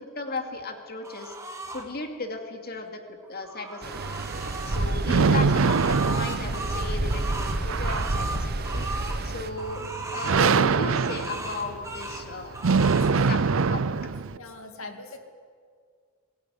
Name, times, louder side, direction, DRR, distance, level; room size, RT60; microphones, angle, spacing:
voice 1, 0.0-1.3 1.7-3.0 3.3-4.1 4.4-9.8 10.1-12.6 13.3-13.4 13.7-14.1, left 3 dB, 45° left, 4 dB, 2.5 m, -35 dB
sound 1, 1.0-1.8 3.2-4.8 5.3-9.2 9.6-10.4 10.8-12.2 12.5-13.1, right 2 dB, 15° right, 2.2 m, -37 dB
Stream, 3.8-9.5, right 2 dB, 50° right, 1.2 m, -30 dB
sound 2, 3.9-14.4, right 5 dB, 65° right, 0.6 m, -25 dB
voice 2, 12.8-13.3 14.3-15.2, left 3 dB, 75° left, 6 dB, 2.3 m, -43 dB
22.0 x 16.5 x 9.4 m, 2.1 s
head